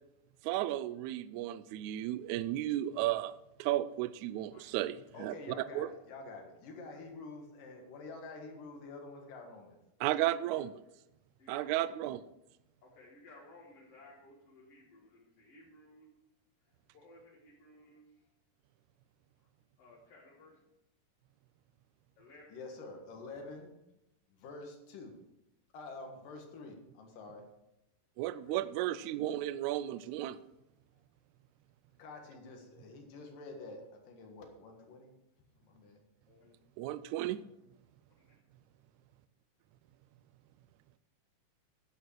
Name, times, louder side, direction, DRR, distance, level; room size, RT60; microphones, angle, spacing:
voice 1, 0.4-5.3 5.8-5.9 10.0-10.7 11.5-12.2 28.2-30.4 36.8-37.4, right 14 dB, 80° right, 15 dB, 1.7 m, -34 dB
voice 2, 5.1-9.8 22.5-23.7 24.3-25.2 25.7-27.5 32.0-35.1 35.6-36.0, left 3 dB, 90° left, 3 dB, 3.3 m, -48 dB
voice 3, 11.4-12.0 12.8-16.1 16.6-18.3 19.4-19.5 19.8-20.6 22.2-22.6 28.4-28.5 30.9-31.0 36.3-36.6 38.2-38.4, left 2 dB, 50° left, -4 dB, 2.5 m, -58 dB
11.0 x 8.7 x 4.7 m, 0.88 s
omnidirectional pair, 3.7 m